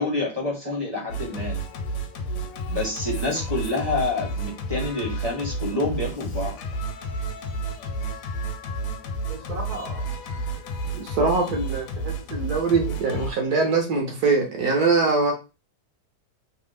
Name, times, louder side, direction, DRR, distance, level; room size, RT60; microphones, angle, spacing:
voice 1, 0.0-1.6 2.7-6.6, left 2 dB, 20° right, 0.6 m, -27 dB
Singing, 1.1-13.3, right 2 dB, 70° left, 1.1 m, -31 dB
voice 2, 9.3-10.0 11.0-15.3, right 4 dB, 65° right, 1.0 m, -23 dB
3.2 x 2.0 x 3.3 m
omnidirectional pair, 2.0 m